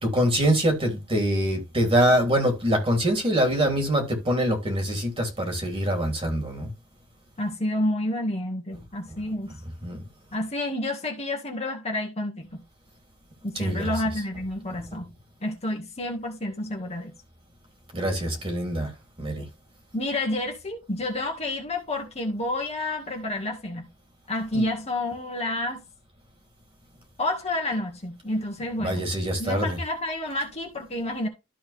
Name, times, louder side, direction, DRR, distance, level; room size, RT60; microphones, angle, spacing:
voice 1, 0.0-6.7 9.8-10.0 13.5-13.9 14.7-14.8 17.9-18.9 19.2-19.4 24.5-24.6 28.8-29.8, equal, 25° right, 3.2 m, -24 dB
voice 2, 7.4-9.5 10.3-12.6 13.4-15.1 15.4-17.1 19.9-23.9 24.3-25.8 27.2-29.1 29.4-31.3, left 1 dB, 30° left, 1.9 m, -29 dB
13.0 x 4.4 x 3.5 m
head